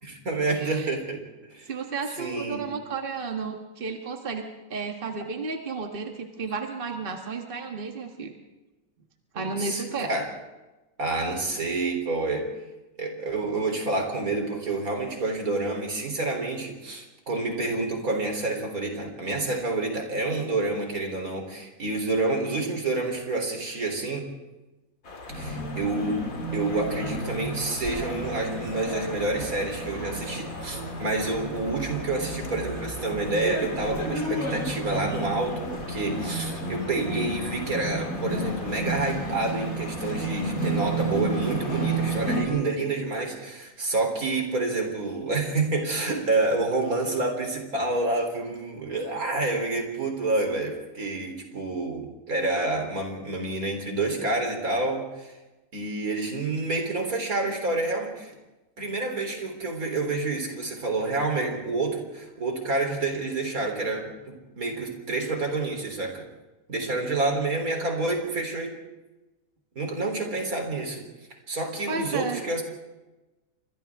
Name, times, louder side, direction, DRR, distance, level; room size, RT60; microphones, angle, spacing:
voice 1, 0.0-1.2 1.5-1.7 2.2-2.7 9.4-10.3 11.0-12.5 13.0-24.3 25.4-26.3 26.5-55.3 55.7-58.3 58.8-66.2 66.7-68.7 69.8-71.0 71.5-72.6, right 2 dB, 80° right, 3 dB, 4.1 m, -28 dB
voice 2, 0.6-0.9 1.7-4.4 4.7-8.3 9.3-10.1 17.3-17.4 71.9-72.4, right 4 dB, 40° right, 3 dB, 1.7 m, -33 dB
sound 1, 25.0-42.4, left 3 dB, 70° left, 2.5 m, -41 dB
sound 2, 25.3-42.4, right 2 dB, 90° left, 7.4 m, -32 dB
30.0 x 25.5 x 3.6 m, 1.1 s
omnidirectional pair, 1.5 m